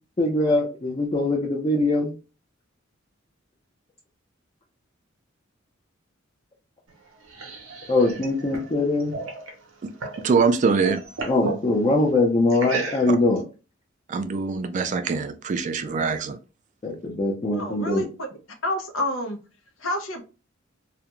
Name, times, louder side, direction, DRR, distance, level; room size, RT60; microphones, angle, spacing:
voice 1, 0.2-2.1 7.9-9.1 11.3-13.4 16.8-18.0, left 2 dB, 30° left, 0.5 m, -22 dB
sound 1, 6.9-10.3 10.6-11.6 12.5-13.4, right 3 dB, 80° right, 0.7 m, -33 dB
voice 2, 10.2-11.0 13.1-13.2 14.1-16.4, right 5 dB, 40° right, 0.3 m, -23 dB
voice 3, 17.5-18.3 18.6-19.4 19.8-20.2, left 1 dB, 80° left, 0.7 m, -28 dB
2.4 x 2.2 x 2.9 m
head